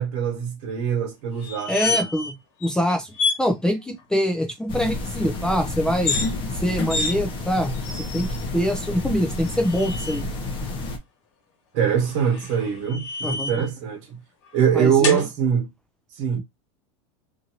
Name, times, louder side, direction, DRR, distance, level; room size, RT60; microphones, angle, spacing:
voice 1, 0.0-2.0 11.7-14.2 14.5-15.7 16.1-16.4, right 8 dB, 60° right, 1.2 m, -23 dB
sound 1, 1.4-2.3 2.6-2.7 3.1-3.4 5.9-6.3 6.9-7.1 7.8-8.4 9.4-10.2 12.1-13.7 15.0-15.2, left 4 dB, 70° left, 1.2 m, -28 dB
voice 2, 1.7-6.2 6.6-7.7 8.1-8.3 8.5-10.3 13.2-13.6 14.8-15.2, equal, 5° left, 0.4 m, -24 dB
Walking and descend stairs (wood), 4.7-11.0, left 2 dB, 30° left, 0.8 m, -30 dB
2.6 x 2.6 x 2.9 m
supercardioid pair, 135°, 16 cm